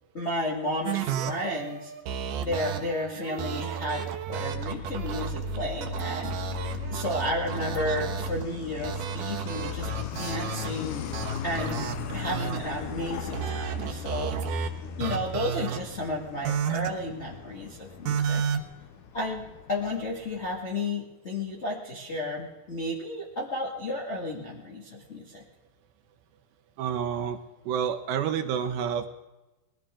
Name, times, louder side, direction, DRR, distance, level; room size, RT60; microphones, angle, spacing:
voice 1, 0.1-1.9 2.4-6.3 6.9-11.1 11.4-14.3 15.0-18.4 19.1-25.4, left 1 dB, 45° left, -3 dB, 0.9 m, -33 dB
sound 1, 0.9-8.4 8.8-10.7 11.1-12.6 13.3-14.7 15.0-15.8 16.5-16.9 18.1-18.6, right 7 dB, 65° right, 2.3 m, -32 dB
Truck, 4.4-20.6, left 7 dB, 70° left, 2.0 m, -38 dB
voice 2, 26.8-27.4 27.7-29.1, right 8 dB, 85° right, 5 dB, 3.1 m, -28 dB
21.0 x 15.0 x 3.7 m, 1.1 s
omnidirectional pair, 4.8 m